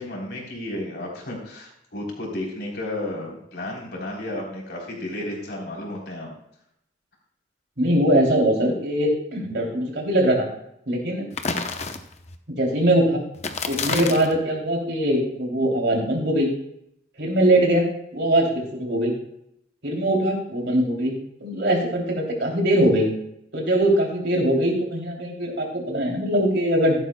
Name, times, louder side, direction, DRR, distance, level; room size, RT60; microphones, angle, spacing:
voice 1, 0.0-6.3, left 1 dB, 60° left, -2 dB, 3.6 m, -32 dB
voice 2, 7.8-10.5 10.9-11.2 12.5-13.2 13.7-16.5 17.2-19.1 19.8-23.1 23.5-27.0, right 1 dB, 65° right, 0 dB, 3.0 m, -22 dB
sound 1, 11.3-12.3 13.3-14.4, left 4 dB, 35° left, 0.8 m, -28 dB
14.0 x 11.5 x 2.3 m, 0.75 s
head